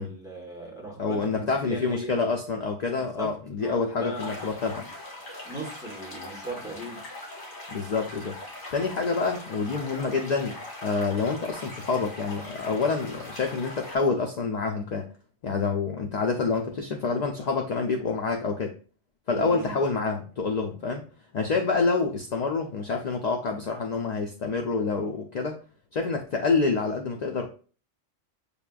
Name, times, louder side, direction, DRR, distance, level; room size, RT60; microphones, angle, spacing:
voice 1, 0.0-2.2 3.0-4.4 4.7-4.9 5.4-7.0 19.3-19.8, right 1 dB, 5° right, 0.9 m, -38 dB
voice 2, 1.0-5.1 7.7-8.4 8.7-15.1 15.4-18.7 19.3-21.0 21.3-25.6 25.9-27.5, left 4 dB, 65° left, 0.4 m, -27 dB
sound 1, 4.1-14.0, left 1 dB, 80° left, 1.8 m, -41 dB
6.8 x 2.4 x 2.3 m
omnidirectional pair, 1.2 m